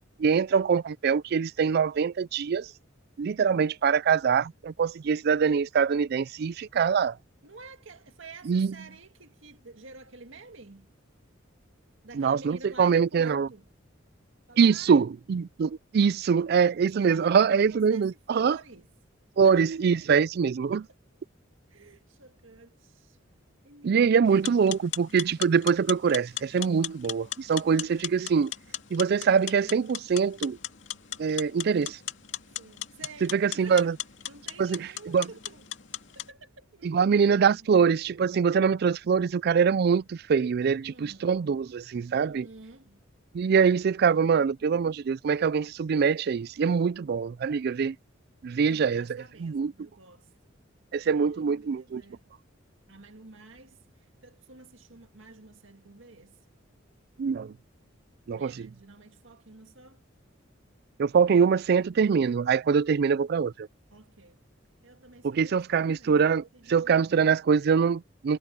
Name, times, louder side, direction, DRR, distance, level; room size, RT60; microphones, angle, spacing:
voice 1, 0.2-2.7 3.2-7.2 8.5-8.7 12.1-13.5 14.6-18.6 19.4-20.8 23.8-28.5 28.9-30.6 31.2-32.0 33.3-33.9 34.6-34.9 35.1-35.3 36.8-42.5 43.3-48.0 48.4-49.1 49.4-49.7 50.9-52.0 57.2-57.5 58.3-58.7 61.0-63.7 65.2-68.4, right 6 dB, 55° right, 0.3 m, -24 dB
voice 2, 7.4-10.9 12.0-13.7 14.5-15.0 17.0-18.9 19.4-19.8 20.2-20.3 20.7-21.0 21.7-23.2 23.6-24.3 27.6-28.0 32.6-33.9 34.3-35.7 36.2-37.9 40.9-41.4 42.1-43.1 48.7-50.3 51.1-52.3 52.9-56.4 58.3-60.0 63.9-64.4 64.8-66.2 66.5-67.2, right 3 dB, 75° right, 1.9 m, -50 dB
sound 1, 24.3-36.3, left 11 dB, 65° left, 2.7 m, -38 dB
head